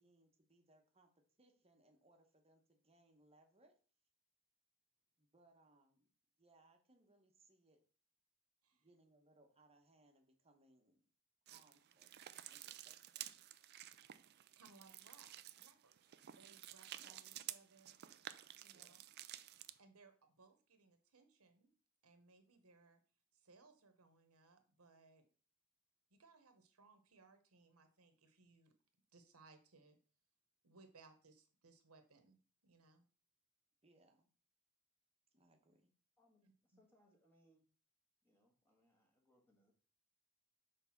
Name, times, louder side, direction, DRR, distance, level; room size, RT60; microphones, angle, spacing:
voice 1, 0.0-3.7 5.2-6.1 6.4-7.8 8.7-11.1 11.5-12.2 12.5-13.4 17.0-17.3 18.7-19.1 33.8-34.3 35.3-35.9, right 2 dB, 30° right, 4 dB, 1.0 m, -71 dB
sound 1, 11.5-19.8, right 12 dB, 50° right, 0.4 m, -53 dB
voice 2, 14.5-15.3 15.6-18.0 18.5-19.0 19.5-21.7 22.0-23.0 23.3-25.2 26.1-28.7 29.1-30.0 30.6-33.0 36.4-36.8, right 3 dB, 85° right, 7 dB, 1.1 m, -66 dB
voice 3, 36.2-37.7 38.2-39.7, equal, 10° left, 0 dB, 1.6 m, -74 dB
6.0 x 3.5 x 5.8 m, 0.40 s
head